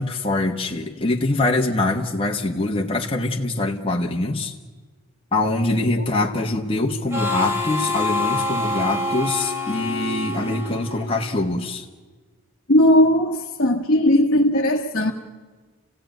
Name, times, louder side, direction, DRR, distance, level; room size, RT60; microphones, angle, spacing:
voice 1, 0.0-4.5 5.3-11.8, left 2 dB, 25° left, 0 dB, 1.2 m, -23 dB
Harmonica, 7.1-11.6, left 2 dB, 10° right, 2.6 m, -26 dB
voice 2, 12.7-15.1, left 1 dB, 50° left, 0 dB, 1.2 m, -17 dB
29.0 x 16.5 x 9.1 m, 1.4 s
head